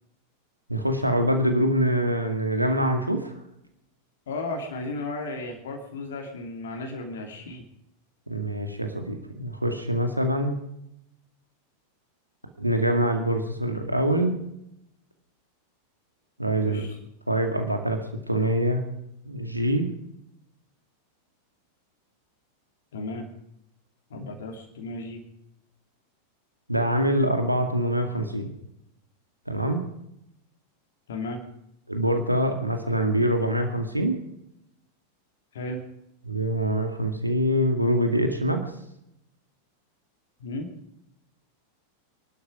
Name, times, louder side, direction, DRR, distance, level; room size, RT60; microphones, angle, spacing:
voice 1, 0.7-3.3 8.3-10.6 12.6-14.4 16.4-16.8 17.3-18.0 18.3-18.8 19.3-19.9 24.1-24.2 26.7-28.5 29.5-29.9 31.9-34.2 36.3-38.7, equal, 85° right, 4 dB, 2.1 m, -24 dB
voice 2, 4.3-7.6 16.6-17.0 22.9-23.3 24.1-25.2 31.1-31.4 35.5-35.8 40.4-40.7, left 2 dB, 60° left, 2 dB, 2.8 m, -34 dB
23.5 x 12.0 x 5.0 m, 0.79 s
figure-of-eight pair, 90°, 0 cm